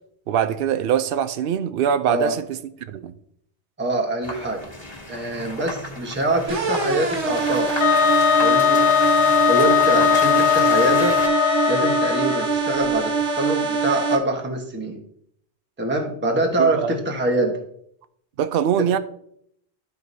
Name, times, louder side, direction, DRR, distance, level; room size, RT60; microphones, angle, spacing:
voice 1, 0.3-3.1 16.6-17.0 18.4-19.0, right 9 dB, 65° right, 0.7 m, -23 dB
voice 2, 3.8-4.7 5.1-7.7 8.4-8.8 9.5-11.2 11.7-15.0 15.8-17.5 18.8-18.9, right 1 dB, 10° right, 1.0 m, -24 dB
sound 1, 4.2-11.3, left 1 dB, 25° left, 1.6 m, -34 dB
sound 2, 6.5-14.2, right 5 dB, 80° right, 1.4 m, -24 dB
Wind instrument woodwind instrument, 7.8-12.5, left 8 dB, 70° left, 0.9 m, -19 dB
13.5 x 4.7 x 2.7 m
omnidirectional pair, 1.1 m